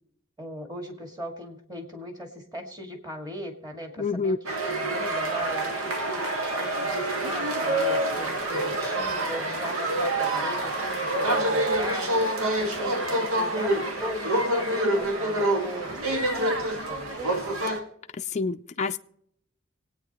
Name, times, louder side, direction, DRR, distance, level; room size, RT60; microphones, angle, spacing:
voice 1, 0.4-17.5, equal, 20° right, 3 dB, 2.3 m, -39 dB
voice 2, 4.0-4.4 18.3-19.0, left 4 dB, 35° left, 7 dB, 0.4 m, -27 dB
sound 1, 4.4-17.8, right 1 dB, 90° right, 1.9 m, -27 dB
25.5 x 9.1 x 3.0 m, 0.75 s
head